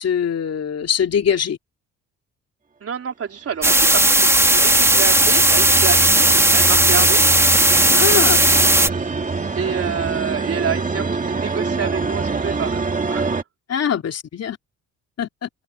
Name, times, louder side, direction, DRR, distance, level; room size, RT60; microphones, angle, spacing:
voice 1, 0.0-1.6 7.9-8.7 13.7-14.6 15.2-15.5, left 8 dB, 55° left, 3.0 m, -22 dB
voice 2, 2.8-7.2 9.6-13.4, right 7 dB, 50° right, 4.0 m, -28 dB
sound 1, 3.6-8.9, right 1 dB, 10° right, 2.2 m, -15 dB
sound 2, 3.8-13.4, right 4 dB, 25° right, 2.3 m, -26 dB
cardioid pair, 90°, 30 cm